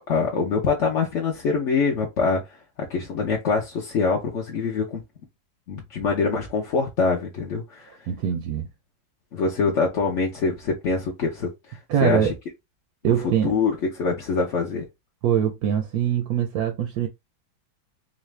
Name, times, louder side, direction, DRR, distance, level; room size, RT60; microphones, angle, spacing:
voice 1, 0.1-5.0 5.7-8.0 9.3-12.3 13.4-14.8, left 4 dB, 55° left, 0.8 m, -24 dB
voice 2, 8.1-8.7 11.9-12.3 13.0-13.5 15.2-17.1, right 9 dB, 70° right, 0.9 m, -23 dB
4.0 x 2.4 x 3.2 m
omnidirectional pair, 2.1 m